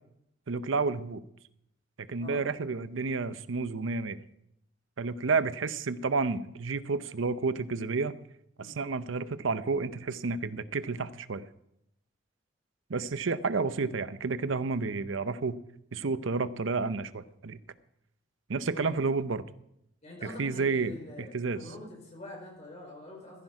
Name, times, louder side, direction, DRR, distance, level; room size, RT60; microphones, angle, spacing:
voice 1, 0.5-1.2 2.1-4.2 5.0-8.1 8.6-11.4 12.9-15.6 15.9-17.6 18.5-19.4 20.2-21.6, right 4 dB, 85° right, 14 dB, 0.7 m, -30 dB
voice 2, 20.0-23.4, left 1 dB, 35° left, -1 dB, 5.0 m, -45 dB
15.0 x 10.5 x 4.8 m, 0.77 s
head